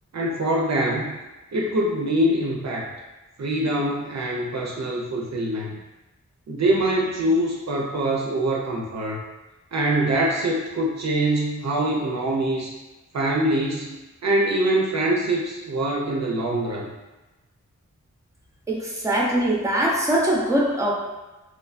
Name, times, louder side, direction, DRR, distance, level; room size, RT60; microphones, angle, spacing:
voice 1, 0.1-1.2 1.5-2.9 3.4-5.8 6.5-9.2 9.7-12.7 13.1-14.0 14.2-16.9, right 1 dB, 60° right, -2 dB, 0.5 m, -24 dB
voice 2, 18.7-20.9, right 1 dB, 10° right, -3 dB, 0.6 m, -22 dB
3.0 x 2.1 x 2.5 m, 1.1 s
wide cardioid pair, 50°, 30 cm